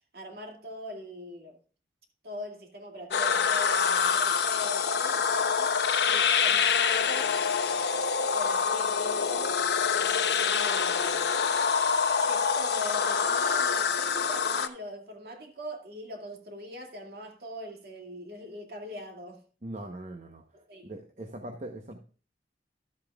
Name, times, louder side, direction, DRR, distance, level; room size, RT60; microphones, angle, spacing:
voice 1, 0.1-1.6 2.2-7.4 8.3-9.6 10.4-11.3 12.2-19.4 20.5-20.9, left 1 dB, 60° right, 2.4 m, -41 dB
sound 1, 3.1-14.7, left 6 dB, 75° left, 0.8 m, -26 dB
voice 2, 19.6-20.4 20.8-22.0, right 1 dB, 40° right, 1.0 m, -41 dB
12.5 x 8.5 x 2.4 m
head